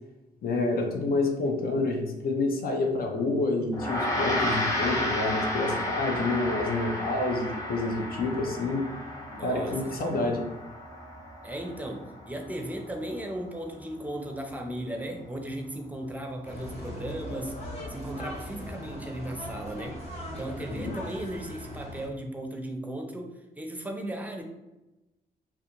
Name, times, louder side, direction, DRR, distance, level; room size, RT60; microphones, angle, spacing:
voice 1, 0.4-8.9 9.4-10.4 20.7-20.9, left 2 dB, 60° left, 2 dB, 0.5 m, -28 dB
Gong, 3.7-13.4, left 1 dB, 20° left, 0.9 m, -33 dB
voice 2, 9.4-10.2 11.4-17.6 17.9-20.0 20.4-24.4, right 1 dB, 10° right, 3 dB, 0.5 m, -36 dB
sound 1, 16.4-22.1, left 1 dB, 40° left, 0.9 m, -39 dB
2.4 x 2.2 x 2.9 m, 1.0 s
supercardioid pair, 55°, 17 cm